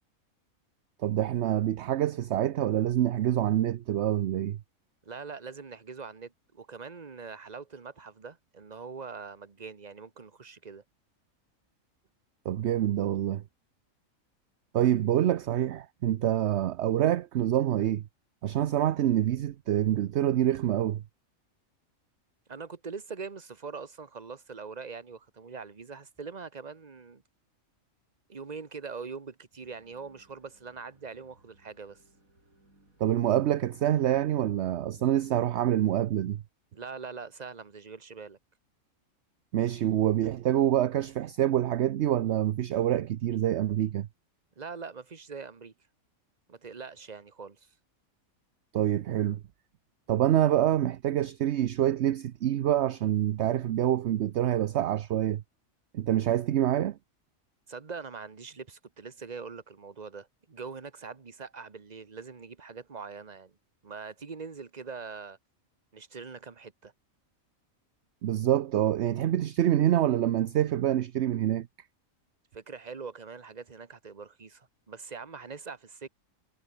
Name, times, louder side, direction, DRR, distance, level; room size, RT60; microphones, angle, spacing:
voice 1, 1.0-4.6 12.4-13.4 14.7-18.0 18.4-21.0 33.0-36.4 39.5-44.1 48.7-49.4 50.1-55.4 55.9-57.0 68.2-71.7, right 12 dB, 60° right, 0.9 m, -26 dB
voice 2, 5.0-10.8 22.5-27.2 28.3-32.0 36.7-38.4 44.6-45.7 46.5-47.7 57.7-63.5 63.8-65.4 65.9-66.9 72.5-76.1, right 5 dB, 30° right, 1.4 m, -43 dB
sound 1, 29.6-36.4, right 2 dB, 80° right, 7.4 m, -61 dB
omnidirectional pair, 1.4 m